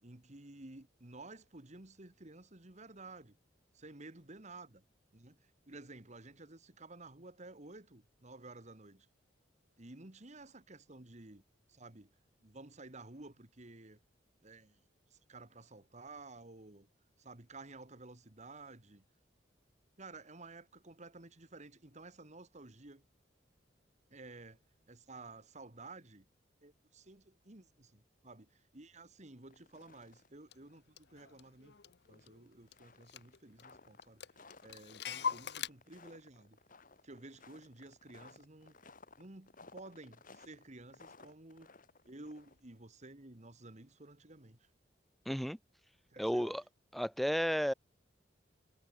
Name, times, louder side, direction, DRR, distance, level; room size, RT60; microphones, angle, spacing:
voice 1, 0.0-3.4 3.7-4.8 5.1-9.1 9.8-11.4 11.7-12.1 12.4-14.0 14.4-14.8 15.1-16.9 17.2-19.0 20.0-23.0 24.1-24.6 24.9-26.3 26.6-31.8 32.1-34.2 34.6-36.6 37.0-38.8 39.2-41.7 42.0-44.7 46.1-46.6, right 2 dB, 40° right, 2.0 m, -53 dB
sound 1, 29.4-30.4 30.7-30.8 31.2-31.3 32.0-42.8, left 3 dB, 50° left, 6.3 m, -59 dB
Clock, 30.5-30.6 31.0-32.4 32.7-32.8 33.1-33.7 34.0-35.7, left 6 dB, 65° left, 0.9 m, -41 dB
voice 2, 45.3-45.6 46.2-46.6 46.9-47.7, equal, ahead, 0.3 m, -32 dB
head